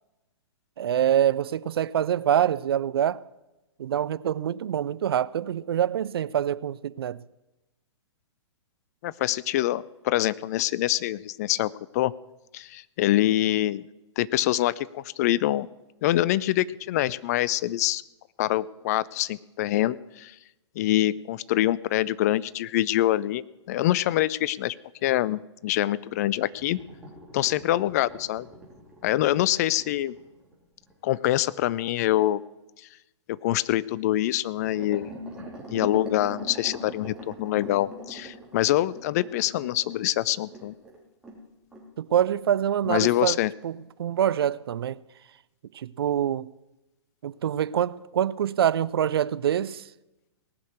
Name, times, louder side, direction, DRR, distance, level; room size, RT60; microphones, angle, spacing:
voice 1, 0.8-3.2 3.8-7.2 42.0-43.4 43.6-45.0 45.7-46.5 47.2-49.8, right 10 dB, 55° right, 0.4 m, -25 dB
voice 2, 9.0-12.1 12.5-13.8 14.2-15.7 16.0-18.0 18.4-20.3 20.8-23.4 23.7-24.7 25.0-26.8 27.3-28.5 29.0-30.1 31.0-32.4 33.3-35.1 35.7-40.7 42.9-43.5, left 14 dB, 35° left, 0.4 m, -25 dB
sound 1, 26.5-31.2 34.6-41.4 41.7-41.9 42.2-42.3 42.8-42.9, equal, 5° right, 3.2 m, -42 dB
18.5 x 6.4 x 8.3 m
figure-of-eight pair, 115°, 15 cm